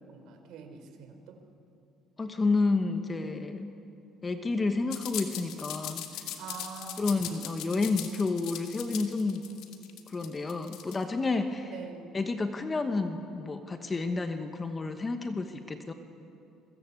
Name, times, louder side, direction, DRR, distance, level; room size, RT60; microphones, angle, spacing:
voice 1, 0.1-1.4 6.4-7.4 11.7-12.1, right 5 dB, 65° right, 5 dB, 4.0 m, -45 dB
voice 2, 2.2-3.7 4.2-6.2 7.0-9.5 10.1-11.8 12.1-15.9, left 3 dB, 20° left, 7 dB, 1.1 m, -30 dB
sound 1, 4.9-11.0, left 11 dB, 70° left, 2.6 m, -39 dB
29.0 x 22.5 x 8.4 m, 2.7 s
cardioid pair, 155°, 0 cm